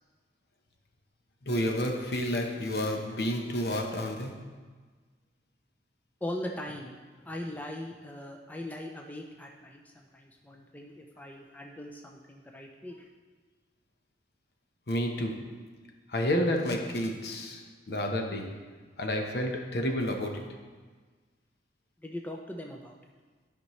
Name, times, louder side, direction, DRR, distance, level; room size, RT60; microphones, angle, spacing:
voice 1, 1.4-4.5 14.9-15.6 16.1-18.6 19.0-20.6, equal, 60° left, 2 dB, 0.9 m, -30 dB
voice 2, 6.2-13.0 22.0-23.0, left 1 dB, 10° left, 1 dB, 0.5 m, -40 dB
13.0 x 5.3 x 3.2 m, 1.4 s
head